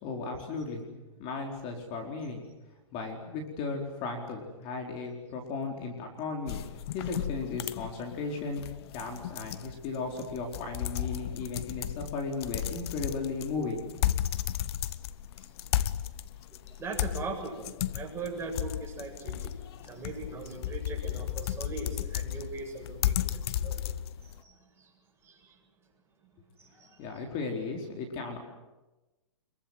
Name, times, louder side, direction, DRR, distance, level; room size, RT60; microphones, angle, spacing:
voice 1, 0.0-2.4 2.9-6.6 6.9-13.8 27.0-28.4, left 4 dB, 35° left, 2 dB, 4.4 m, -36 dB
sound 1, 6.5-24.4, left 12 dB, 50° left, 1.0 m, -34 dB
voice 2, 16.8-19.6 19.8-23.8 24.4-24.9 25.2-25.5 26.6-27.0, right 3 dB, 15° right, -1 dB, 7.8 m, -40 dB
26.5 x 23.0 x 8.0 m, 1.1 s
hypercardioid pair, 140°, 17 cm